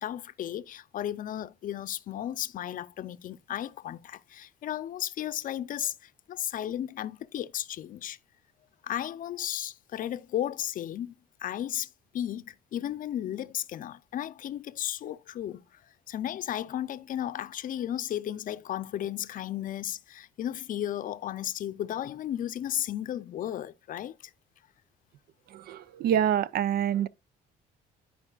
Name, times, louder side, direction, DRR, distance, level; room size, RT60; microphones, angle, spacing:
voice 1, 0.0-8.2 8.8-11.1 11.4-15.8 16.1-24.1, left 11 dB, 55° left, 0.6 m, -34 dB
voice 2, 25.5-27.1, right 9 dB, 65° right, 0.5 m, -26 dB
14.0 x 4.7 x 2.4 m
cardioid pair, 110°, 17 cm